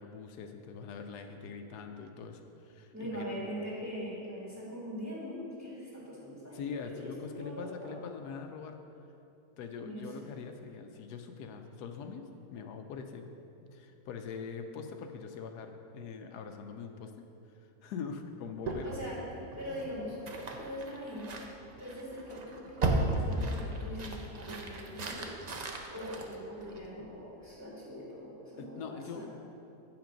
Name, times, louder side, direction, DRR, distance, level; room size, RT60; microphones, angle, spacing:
voice 1, 0.0-3.3 6.3-8.8 9.6-13.3 13.7-17.3 17.8-19.0 28.6-29.3, left 5 dB, 85° left, 5 dB, 1.1 m, -43 dB
voice 2, 2.9-7.1 7.4-8.0 9.8-10.0 18.8-19.2 19.6-20.2 20.5-21.4 21.8-25.3 25.9-29.3, equal, 10° right, -7 dB, 2.0 m, -42 dB
sound 1, 18.6-27.1, right 2 dB, 75° right, 0.3 m, -36 dB
8.2 x 6.0 x 5.1 m, 2.8 s
omnidirectional pair, 1.7 m